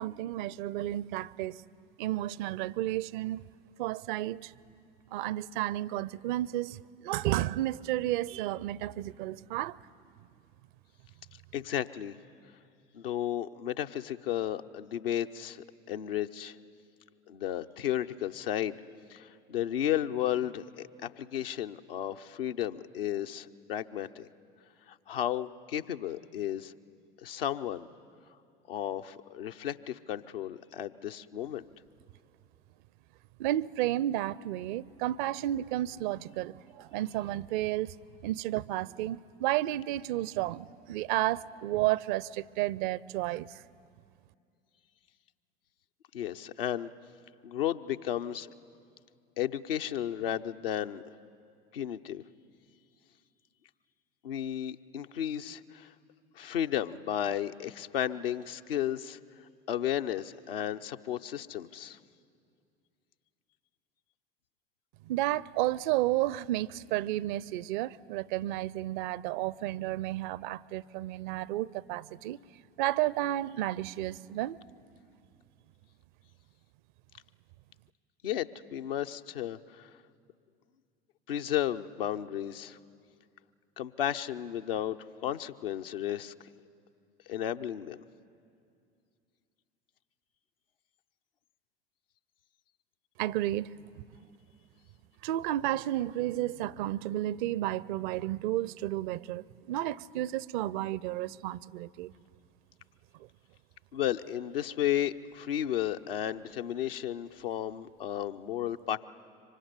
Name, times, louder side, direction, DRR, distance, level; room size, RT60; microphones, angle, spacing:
voice 1, 0.0-1.6 2.0-3.4 3.8-4.5 5.1-9.8 33.4-37.9 38.2-43.6 65.0-72.4 72.8-74.6 93.2-94.0 95.2-102.1, right 15 dB, 55° right, 0.6 m, -32 dB
voice 2, 11.5-12.2 12.9-16.6 17.3-18.8 19.1-24.3 24.9-26.7 27.2-27.9 28.7-31.7 46.1-46.9 47.4-48.5 49.4-51.0 51.7-52.2 54.2-55.9 56.3-62.0 78.2-79.9 81.3-82.8 83.8-86.3 87.3-88.0 103.9-109.1, left 11 dB, 70° left, 0.8 m, -33 dB
25.0 x 24.5 x 9.7 m
figure-of-eight pair, 70°, 29 cm